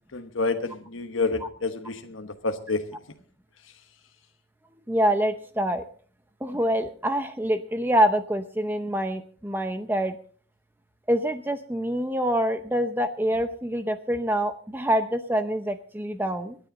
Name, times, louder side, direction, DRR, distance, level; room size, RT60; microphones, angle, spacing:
voice 1, 0.1-2.8, left 3 dB, 80° left, 6 dB, 1.1 m, -29 dB
voice 2, 4.9-5.8 6.4-10.2 11.1-16.6, equal, 10° right, 8 dB, 0.6 m, -25 dB
25.5 x 10.0 x 3.8 m, 0.43 s
head